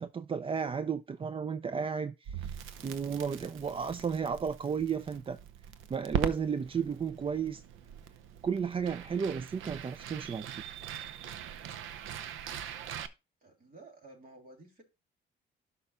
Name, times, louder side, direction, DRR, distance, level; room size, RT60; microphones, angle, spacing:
voice 1, 0.0-2.6 2.8-5.4 5.9-7.6 8.4-10.6, right 6 dB, 25° right, 0.4 m, -33 dB
Crackle, 2.3-13.1, right 8 dB, 85° right, 0.7 m, -41 dB
voice 2, 13.4-14.8, right 2 dB, 45° right, 3.3 m, -53 dB
12.5 x 5.6 x 2.3 m
cardioid pair, 90°, 20 cm